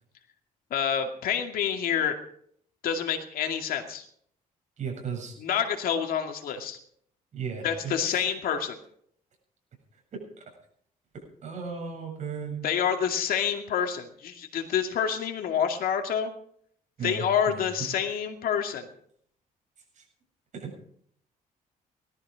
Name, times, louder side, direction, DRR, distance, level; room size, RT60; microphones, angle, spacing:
voice 1, 0.7-2.2 2.8-4.0 5.4-6.8 7.6-8.8 12.6-16.3 17.0-18.9, left 8 dB, 75° left, 5 dB, 2.3 m, -28 dB
voice 2, 4.8-5.3 7.3-8.2 10.1-10.2 11.4-12.7 17.0-17.6 20.0-20.1 20.5-20.7, right 6 dB, 50° right, 1 dB, 8.0 m, -35 dB
19.0 x 13.5 x 5.1 m, 0.65 s
cardioid pair, 145°, 15 cm